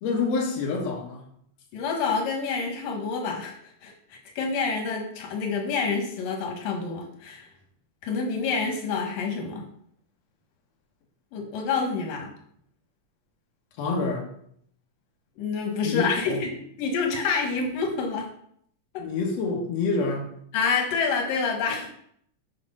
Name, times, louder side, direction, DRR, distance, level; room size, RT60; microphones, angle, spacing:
voice 1, 0.0-1.2 13.8-14.3 15.8-16.4 19.0-20.3, left 4 dB, 60° left, 0 dB, 2.3 m, -27 dB
voice 2, 1.7-7.5 8.0-9.7 11.3-12.3 15.4-16.5 16.8-18.3 18.9-19.0 20.5-21.9, left 5 dB, 85° left, 2 dB, 2.9 m, -28 dB
7.6 x 4.8 x 5.4 m, 0.67 s
omnidirectional pair, 3.7 m